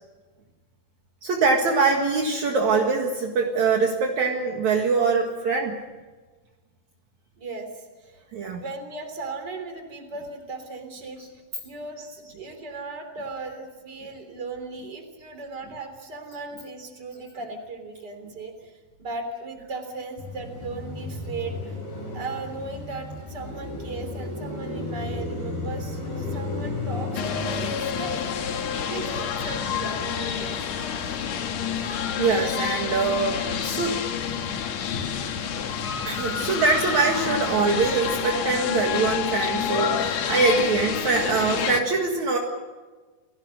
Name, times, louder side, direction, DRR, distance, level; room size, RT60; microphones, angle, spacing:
voice 1, 1.2-5.8 8.3-8.6 11.2-11.3 31.8-34.0 36.1-42.4, right 4 dB, 55° right, 1 dB, 2.9 m, -23 dB
voice 2, 7.4-11.2 11.6-28.1 28.6-30.8, right 3 dB, 30° right, 6 dB, 3.7 m, -37 dB
Car passing by, 20.2-32.6 33.0-35.5, left 2 dB, 85° left, 7.6 m, -35 dB
sound 1, 27.1-41.8, left 8 dB, 60° left, 2.3 m, -28 dB
29.0 x 18.5 x 6.6 m, 1.3 s
omnidirectional pair, 4.1 m